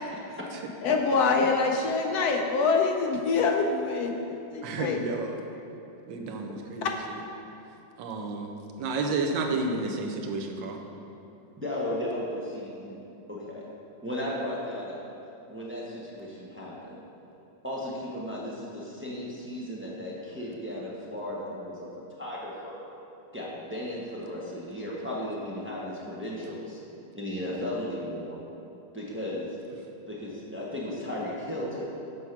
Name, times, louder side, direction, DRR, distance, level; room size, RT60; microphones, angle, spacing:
voice 1, 0.8-5.1 6.8-6.9, left 4 dB, 70° left, 2 dB, 0.9 m, -25 dB
voice 2, 4.6-5.4 6.1-6.9 8.0-8.5 8.8-10.8, right 3 dB, 85° right, 3 dB, 1.4 m, -31 dB
voice 3, 11.6-13.0 13.3-13.7 14.0-15.1 15.5-17.0 17.6-21.9 22.2-22.8 23.3-26.8 27.1-28.4 28.9-29.6 30.1-31.8, left 1 dB, 15° right, -5 dB, 0.5 m, -35 dB
7.0 x 4.8 x 5.8 m, 2.8 s
omnidirectional pair, 2.0 m